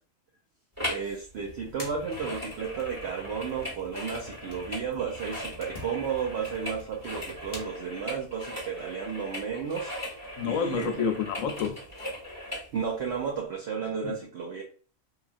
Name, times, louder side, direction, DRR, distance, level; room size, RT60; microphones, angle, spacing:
sound 1, 0.8-1.1 1.4-12.7 13.2-13.3, equal, 15° right, 1.1 m, -39 dB
voice 1, 0.9-10.1 10.4-11.1 12.7-14.6, right 6 dB, 65° right, 0.7 m, -33 dB
sound 2, 1.3-7.6, left 1 dB, 40° left, 0.9 m, -47 dB
voice 2, 10.4-11.8 12.2-12.4 14.0-14.1, left 7 dB, 80° left, 1.0 m, -29 dB
2.9 x 2.4 x 2.4 m
omnidirectional pair, 1.4 m